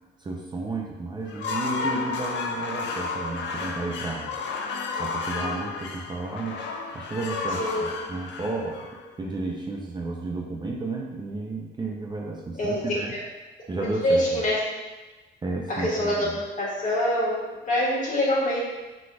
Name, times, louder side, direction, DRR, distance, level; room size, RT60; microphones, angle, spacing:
voice 1, 0.2-4.4 5.0-6.6 6.9-13.2 13.7-14.4 15.4-16.3, right 3 dB, 25° right, -1 dB, 0.5 m, -32 dB
sound 1, 1.2-9.4, left 4 dB, 70° left, 0.5 m, -32 dB
voice 2, 7.5-8.0 12.6-13.0 14.0-14.6 15.7-16.3 16.6-18.6, left 1 dB, 45° left, -5 dB, 1.4 m, -25 dB
4.8 x 4.0 x 2.3 m, 1.2 s
cardioid pair, 110°, 19 cm